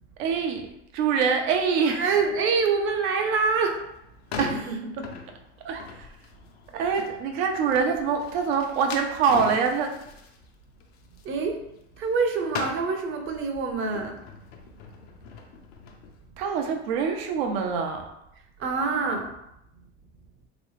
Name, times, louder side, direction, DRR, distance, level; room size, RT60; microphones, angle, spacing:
voice 1, 0.2-0.7 0.9-2.1 4.4-4.8 5.7-6.1 6.8-9.9 16.4-18.1, right 6 dB, 75° right, 3 dB, 0.8 m, -25 dB
voice 2, 1.8-3.9 4.3-5.2 5.6-5.9 6.7-6.9 11.2-11.7 12.0-14.2 18.6-19.4, right 4 dB, 40° right, 4 dB, 0.7 m, -26 dB
sound 1, 3.8-12.2 12.5-16.1, left 5 dB, 70° left, 0.7 m, -40 dB
3.2 x 3.0 x 3.1 m, 0.83 s
supercardioid pair, 100°, 32 cm